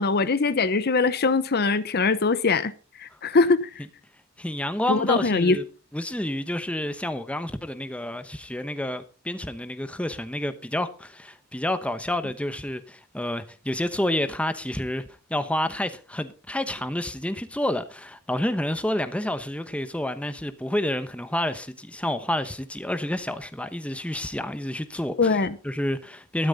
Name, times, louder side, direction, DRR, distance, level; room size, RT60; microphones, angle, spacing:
voice 1, 0.0-2.7 3.0-3.8 4.9-5.6 25.2-25.6, left 4 dB, 45° left, 0.8 m, -22 dB
voice 2, 4.4-5.6 5.9-15.0 15.3-26.5, left 1 dB, 5° left, 1.0 m, -29 dB
13.5 x 12.0 x 4.0 m
head